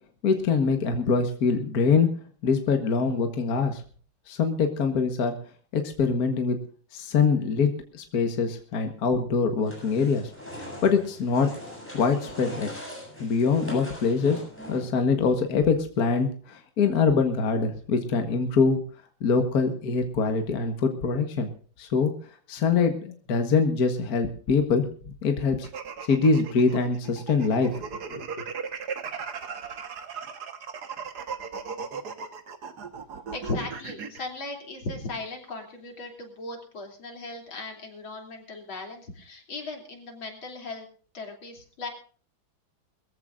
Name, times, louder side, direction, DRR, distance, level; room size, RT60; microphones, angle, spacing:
voice 1, 0.2-2.1 2.4-3.8 4.3-5.3 5.7-6.6 6.9-10.3 10.8-11.5 11.9-12.7 13.2-14.4 14.7-18.8 19.2-21.5 21.8-22.1 22.5-24.9 25.2-25.7 26.0-27.7 28.1-28.2, left 5 dB, 50° left, 6 dB, 1.8 m, -24 dB
sound 1, 9.6-15.0, equal, 5° left, 7.4 m, -41 dB
sound 2, 25.6-34.3, right 6 dB, 55° right, 1.8 m, -37 dB
voice 2, 33.3-40.9 41.1-41.9, left 2 dB, 75° left, 3 dB, 3.8 m, -37 dB
22.5 x 15.0 x 2.5 m, 0.42 s
omnidirectional pair, 2.2 m